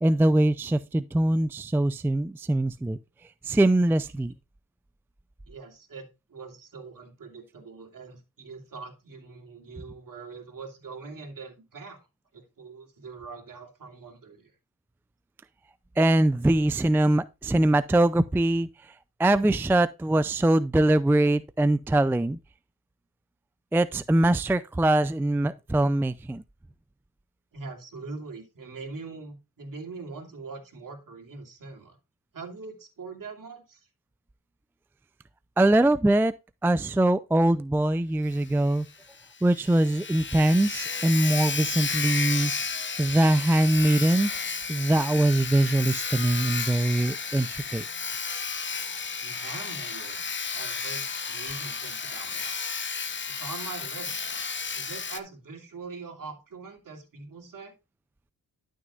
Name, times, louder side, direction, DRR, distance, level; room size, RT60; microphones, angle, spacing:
voice 1, 0.0-3.0 3.4-4.3 16.0-18.9 19.2-22.4 23.7-26.4 35.6-36.3 36.6-38.9 39.4-42.5 43.0-44.3 44.7-47.8, right 1 dB, 5° right, 0.4 m, -22 dB
voice 2, 5.4-12.1 12.3-14.5 27.5-32.0 32.3-33.9 49.2-52.5 53.3-54.2 54.7-57.7, right 4 dB, 55° right, 2.8 m, -42 dB
Sawing, 38.3-38.4 38.7-38.8 39.2-39.3 39.5-55.2, left 5 dB, 30° left, 0.8 m, -33 dB
12.0 x 6.3 x 2.4 m
cardioid pair, 65°, 38 cm